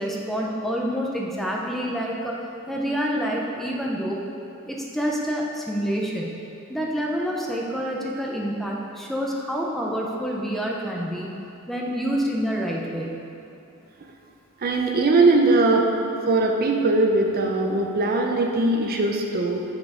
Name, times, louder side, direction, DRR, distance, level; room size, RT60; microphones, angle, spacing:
voice 1, 0.0-2.4 2.7-4.2 4.7-6.4 6.7-11.3 11.7-13.2, equal, ahead, -2 dB, 0.5 m, -27 dB
voice 2, 14.6-15.9 16.3-19.6, right 2 dB, 45° right, 2 dB, 0.5 m, -20 dB
6.1 x 6.0 x 3.7 m, 2.7 s
head